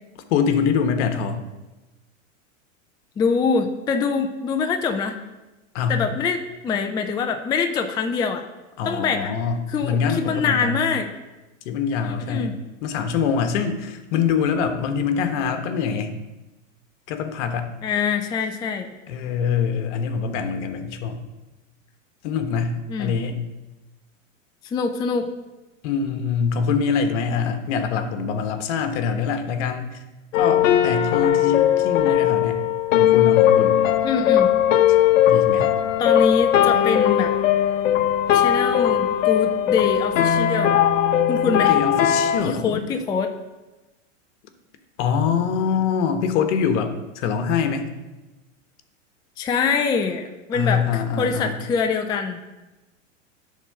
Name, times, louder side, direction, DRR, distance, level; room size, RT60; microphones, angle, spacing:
voice 1, 0.3-1.4 5.7-6.0 8.8-10.8 11.6-12.5 12.8-16.2 17.1-17.7 19.1-21.2 22.2-23.4 25.8-30.0 30.4-32.6 33.0-33.8 35.3-35.7 41.4-42.9 45.0-47.9 50.5-51.6, left 6 dB, 65° left, 7 dB, 1.2 m, -24 dB
voice 2, 3.2-5.2 5.9-8.5 8.8-9.3 9.7-11.1 12.0-12.5 17.8-18.9 22.9-23.2 24.6-25.3 34.0-34.5 35.5-35.6 36.0-37.3 38.3-40.8 41.3-41.7 42.4-43.3 49.4-52.4, left 5 dB, 10° left, 5 dB, 0.3 m, -24 dB
sound 1, 30.3-42.4, left 10 dB, 80° left, 0.8 m, -19 dB
11.0 x 3.8 x 6.6 m, 1.1 s
hypercardioid pair, 115°, 39 cm